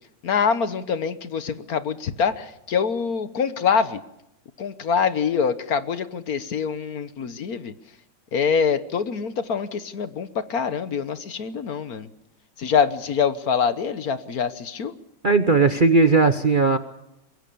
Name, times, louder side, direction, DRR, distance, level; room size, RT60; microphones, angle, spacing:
voice 1, 0.2-4.0 4.6-7.7 8.3-12.1 12.6-14.9, left 6 dB, 55° left, 12 dB, 1.5 m, -25 dB
voice 2, 15.2-16.8, right 4 dB, 40° right, 8 dB, 0.8 m, -17 dB
23.5 x 22.5 x 6.8 m, 0.84 s
omnidirectional pair, 1.9 m